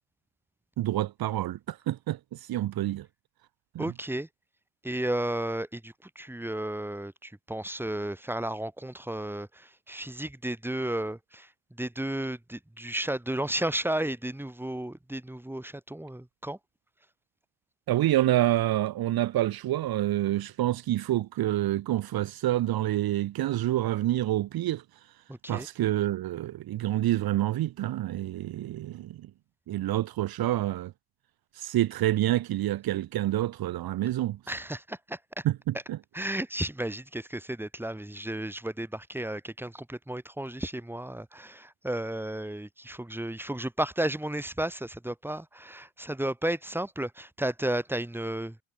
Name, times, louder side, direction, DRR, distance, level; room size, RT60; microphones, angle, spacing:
voice 1, 0.8-3.1 3.7-3.9 17.9-24.8 25.5-29.3 29.7-30.9 31.5-34.4 35.4-36.0, right 14 dB, 70° right, 1.4 m, -27 dB
voice 2, 3.8-4.3 4.8-11.5 11.8-16.6 25.3-25.7 34.5-35.5 36.1-48.6, right 1 dB, 5° right, 5.8 m, -33 dB
cardioid pair, 115°, 38 cm